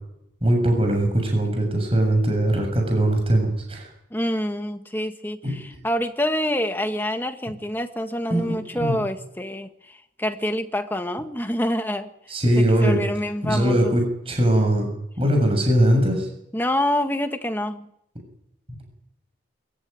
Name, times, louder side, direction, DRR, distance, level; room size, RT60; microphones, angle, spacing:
voice 1, 0.4-3.9 5.4-5.6 8.3-9.0 12.3-13.0 13.4-14.9 15.2-16.3, right 1 dB, 30° right, 2 dB, 7.1 m, -21 dB
voice 2, 4.1-12.1 12.6-14.0 16.5-17.9, left 1 dB, 10° left, 6 dB, 1.7 m, -26 dB
24.0 x 16.0 x 9.5 m, 0.77 s
head